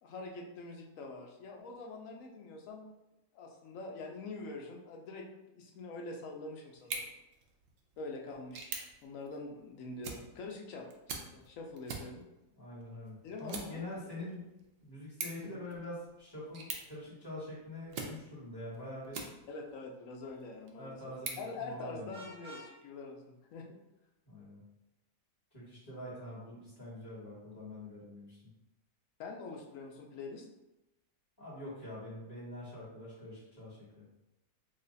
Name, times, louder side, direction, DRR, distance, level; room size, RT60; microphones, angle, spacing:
voice 1, 0.0-2.9 3.3-5.3 5.5-7.1 8.0-8.7 9.0-10.9 11.1-12.2 13.2-13.8 14.2-14.3 19.5-21.0 21.4-23.8 29.2-30.5, left 3 dB, 65° left, 1 dB, 0.9 m, -45 dB
sound 1, 6.7-19.7 20.2-22.3, right 4 dB, 70° right, 0.8 m, -47 dB
voice 2, 12.6-14.4 14.8-19.2 20.8-22.1 24.2-24.6 25.5-28.4 31.4-34.0, left 1 dB, 15° left, -9 dB, 1.4 m, -45 dB
Vehicle horn car horn honking, 22.1-22.7, equal, 25° right, 0.8 m, -48 dB
3.2 x 2.2 x 3.9 m, 0.95 s
omnidirectional pair, 1.7 m